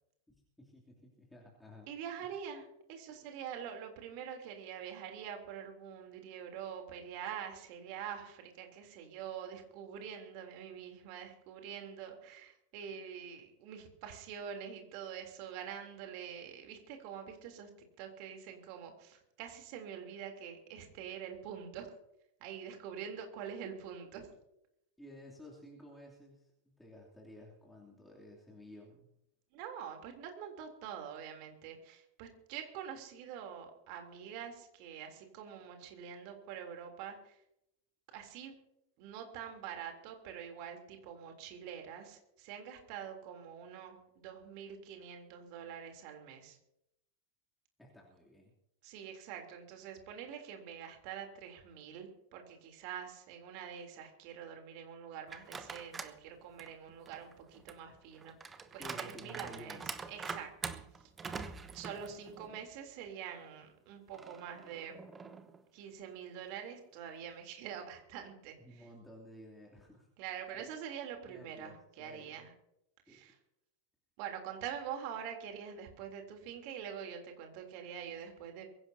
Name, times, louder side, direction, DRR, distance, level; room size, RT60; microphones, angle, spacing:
voice 1, 0.3-1.9 25.0-29.1 47.8-48.5 58.8-59.8 68.6-70.1 70.6-70.7 71.2-72.4 73.1-73.2, equal, 5° left, -3 dB, 2.9 m, -54 dB
voice 2, 1.9-17.7 18.0-21.9 22.4-24.3 29.5-37.3 38.1-38.5 39.0-46.6 48.8-58.3 58.7-59.8 60.1-60.8 61.7-65.0 65.7-68.8 70.2-72.5 73.1-73.4 74.2-78.6, right 8 dB, 45° right, 3 dB, 3.2 m, -45 dB
sound 1, 55.3-56.2 56.6-62.7 63.1-63.2 64.1-65.6, right 5 dB, 15° right, 1.1 m, -45 dB
23.5 x 16.0 x 2.8 m, 0.83 s
figure-of-eight pair, 90°, 0 cm